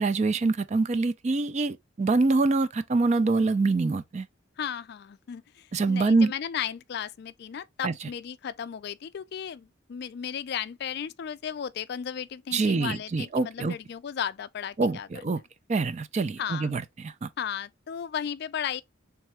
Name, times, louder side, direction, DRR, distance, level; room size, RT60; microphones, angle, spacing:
voice 1, 0.0-4.3 5.7-6.3 7.8-7.9 12.5-13.7 14.8-15.4 15.7-17.3, right 3 dB, 35° right, 0.3 m, -25 dB
voice 2, 4.6-15.1 16.4-16.7 17.4-18.8, left 8 dB, 50° left, 0.3 m, -35 dB
3.6 x 3.3 x 3.1 m
head